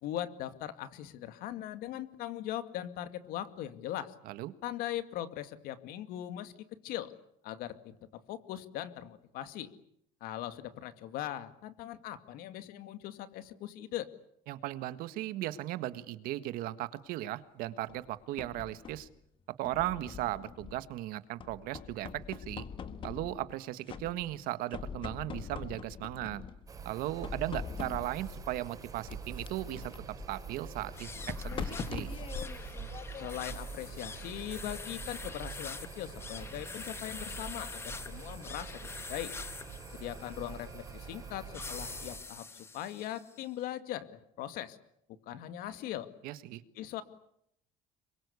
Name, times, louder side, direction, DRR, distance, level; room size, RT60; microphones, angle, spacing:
voice 1, 0.0-4.1 4.6-6.5 6.8-7.1 7.4-9.7 10.2-14.1 33.2-39.3 39.9-44.8 45.3-46.1 46.8-47.0, left 12 dB, 70° left, 11 dB, 2.3 m, -40 dB
voice 2, 14.5-19.1 19.6-22.7 23.0-26.4 26.8-29.9 30.3-32.1 46.2-46.6, right 15 dB, 70° right, 13 dB, 1.6 m, -37 dB
sound 1, 17.9-19.1 19.6-21.0 21.4-23.6 23.9-24.4 24.7-26.7 27.2-28.3 29.1-33.6, left 6 dB, 35° left, 1.7 m, -43 dB
sound 2, 26.7-42.2, right 5 dB, 20° right, 4.6 m, -45 dB
sound 3, 30.9-43.4, left 4 dB, 15° left, 1.3 m, -46 dB
27.5 x 23.5 x 8.3 m, 0.73 s
cardioid pair, 165°, 16 cm